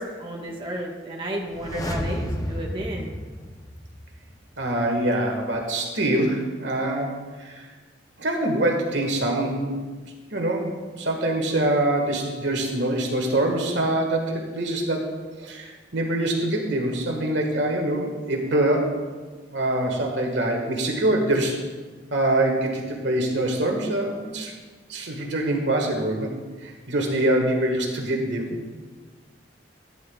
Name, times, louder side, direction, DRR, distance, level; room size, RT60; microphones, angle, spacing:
voice 1, 0.0-3.1, right 1 dB, 30° right, -3 dB, 1.4 m, -32 dB
sound 1, 1.4-4.3 4.6-4.7, equal, 20° left, 0.7 m, -32 dB
voice 2, 4.6-7.7 8.2-9.9 10.3-19.0 19.5-21.6 22.1-24.5 24.9-26.3 26.6-28.5, right 1 dB, 70° right, 2 dB, 1.6 m, -24 dB
15.0 x 10.5 x 2.3 m, 1.4 s
head